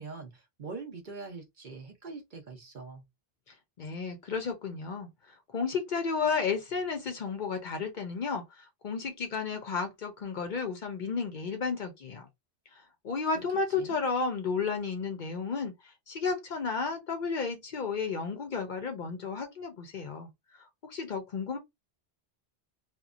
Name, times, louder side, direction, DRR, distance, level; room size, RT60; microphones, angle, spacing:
voice 1, 0.0-3.0 13.3-14.0, right 4 dB, 50° right, 0.8 m, -43 dB
voice 2, 3.5-12.3 12.7-21.6, left 5 dB, 55° left, 0.6 m, -33 dB
2.9 x 2.2 x 2.4 m
omnidirectional pair, 1.1 m